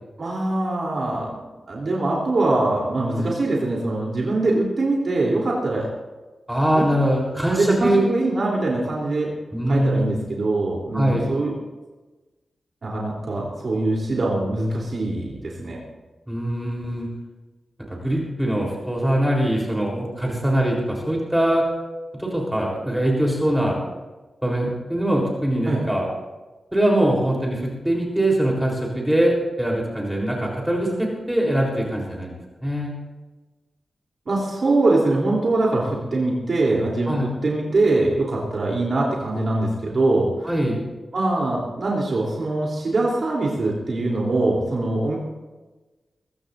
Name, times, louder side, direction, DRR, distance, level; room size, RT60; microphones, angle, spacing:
voice 1, 0.2-1.3 1.7-5.9 6.7-6.9 7.5-9.3 9.7-11.5 12.8-15.8 25.6-25.8 34.2-40.5 41.1-45.2, right 2 dB, 60° right, -3 dB, 3.4 m, -23 dB
voice 2, 6.5-8.0 9.5-10.0 10.9-11.2 16.3-17.1 17.9-21.6 22.2-23.8 24.4-26.1 26.7-32.9 37.1-37.3 40.4-40.8, right 1 dB, 5° right, -2 dB, 3.8 m, -22 dB
22.5 x 15.5 x 2.7 m, 1.2 s
wide cardioid pair, 80°, 0 cm